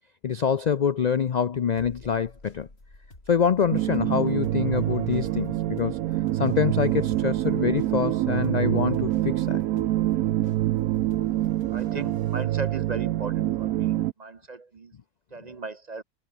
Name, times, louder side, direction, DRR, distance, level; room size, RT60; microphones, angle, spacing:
voice 1, 0.2-2.7 3.3-6.0 6.3-9.6, left 7 dB, 60° left, 0.4 m, -25 dB
sound 1, 1.8-12.4, left 2 dB, 45° left, 5.4 m, -49 dB
sound 2, 3.7-14.1, right 14 dB, 85° right, 1.0 m, -26 dB
voice 2, 11.7-14.9 15.3-16.0, right 4 dB, 35° right, 0.8 m, -37 dB
omnidirectional pair, 1.5 m